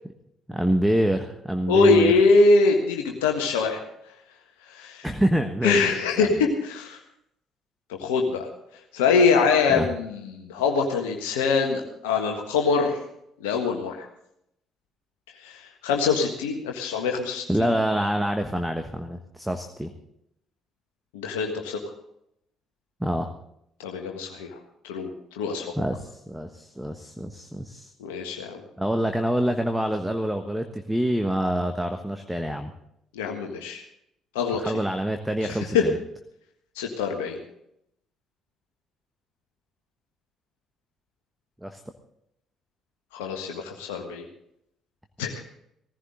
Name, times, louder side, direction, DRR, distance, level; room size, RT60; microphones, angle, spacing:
voice 1, 0.5-2.1 5.0-5.9 6.2-6.4 9.7-9.9 17.5-19.9 23.0-23.3 25.8-27.9 28.8-32.7 34.5-36.0 41.6-41.8, right 1 dB, 5° right, 6 dB, 1.3 m, -26 dB
voice 2, 1.7-3.8 4.7-5.1 5.6-7.0 7.9-8.5 8.9-13.0 13.4-14.1 15.4-17.7 21.1-21.8 23.8-24.6 24.8-25.1 25.3-25.7 28.0-28.6 33.1-33.8 34.3-34.6 35.4-35.8 36.7-37.4 43.1-44.2 45.2-45.4, left 4 dB, 70° left, 2 dB, 1.6 m, -23 dB
18.0 x 15.0 x 3.8 m, 0.76 s
figure-of-eight pair, 45°, 0 cm